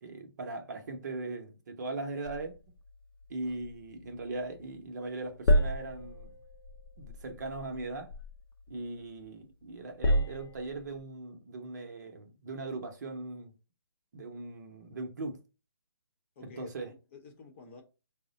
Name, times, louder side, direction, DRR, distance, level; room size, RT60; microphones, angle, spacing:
voice 1, 0.0-2.6 3.3-6.3 7.0-8.1 8.7-13.5 14.1-15.4 16.4-16.9, right 2 dB, 45° right, 0.7 m, -39 dB
sound 1, 2.2-4.8 5.1-9.3 9.7-11.0, equal, 55° left, 0.6 m, -32 dB
voice 2, 16.4-17.8, left 4 dB, 30° left, 0.8 m, -51 dB
4.6 x 2.1 x 3.9 m
hypercardioid pair, 160°, 13 cm